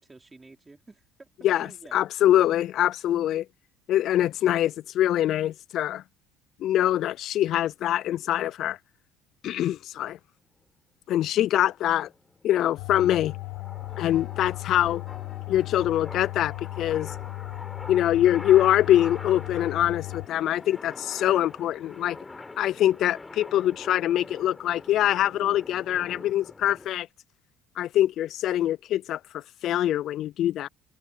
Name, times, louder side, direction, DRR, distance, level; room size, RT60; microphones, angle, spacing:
voice 1, 0.0-1.3 1.6-2.0 4.1-4.3 11.2-11.4, right 3 dB, 15° right, 4.3 m, -51 dB
voice 2, 1.4-3.5 3.9-6.0 6.6-8.8 9.4-10.2 11.1-12.1 12.4-13.3 14.0-15.0 15.5-17.1 17.9-22.2 22.6-27.1 27.8-30.7, left 12 dB, 55° left, 0.3 m, -24 dB
sound 1, 11.8-26.9, left 3 dB, 15° left, 3.9 m, -44 dB
sound 2, 12.8-20.3, left 22 dB, 70° left, 1.2 m, -37 dB
sound 3, 13.8-23.7, left 6 dB, 30° left, 5.3 m, -53 dB
cardioid pair, 120°, 0 cm